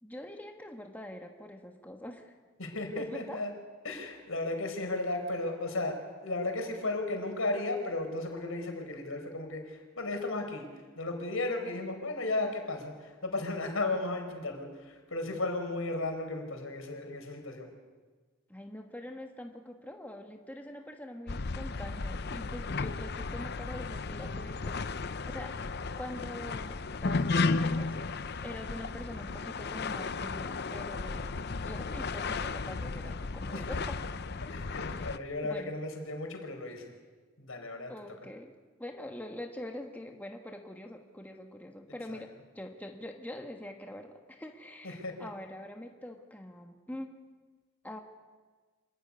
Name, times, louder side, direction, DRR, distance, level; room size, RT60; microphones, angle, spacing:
voice 1, 0.0-2.3 3.0-3.4 18.5-25.6 26.0-27.9 28.4-31.3 31.6-34.0 34.8-35.1 35.4-35.7 37.9-47.2 47.8-48.0, left 1 dB, 10° left, 3 dB, 1.3 m, -44 dB
voice 2, 2.6-3.5 3.8-10.7 11.0-17.7 33.5-33.6 34.5-36.9 37.4-37.9 42.1-42.2 44.8-45.2, left 2 dB, 80° left, 4 dB, 4.6 m, -35 dB
sound 1, 21.3-35.2, left 3 dB, 50° left, 0.7 m, -34 dB
26.0 x 14.0 x 9.7 m, 1.4 s
head